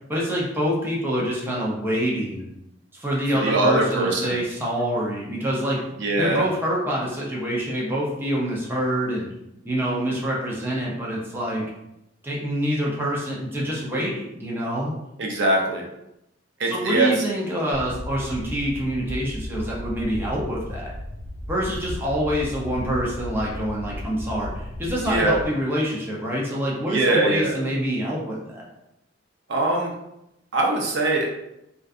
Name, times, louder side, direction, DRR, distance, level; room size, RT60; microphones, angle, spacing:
voice 1, 0.1-2.5 2.9-5.8 6.2-9.3 9.6-11.6 12.2-14.9 16.6-20.9 21.5-28.6, equal, 10° right, -4 dB, 0.5 m, -26 dB
voice 2, 3.4-4.4 6.0-6.5 15.2-15.8 16.6-17.1 25.0-25.3 26.9-27.6 29.5-29.9 30.5-31.3, right 2 dB, 65° right, -1 dB, 0.5 m, -22 dB
sound 1, 17.7-25.5, left 1 dB, 75° left, 0.8 m, -35 dB
2.5 x 2.3 x 2.4 m, 0.86 s
head